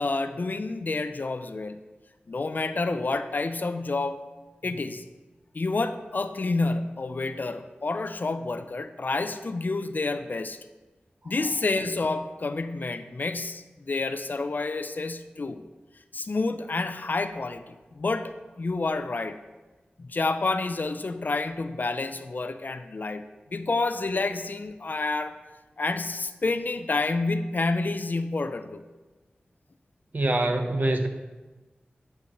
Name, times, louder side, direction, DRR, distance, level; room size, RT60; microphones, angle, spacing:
voice 1, 0.0-1.8 2.3-4.2 4.6-5.0 5.5-10.6 11.2-15.6 16.1-19.4 20.0-23.2 23.5-25.4 25.8-28.8, left 3 dB, 55° left, 10 dB, 0.5 m, -29 dB
voice 2, 30.1-31.1, right 1 dB, 50° right, 6 dB, 0.8 m, -24 dB
10.5 x 6.7 x 3.0 m, 1.2 s
wide cardioid pair, 55°, 4 cm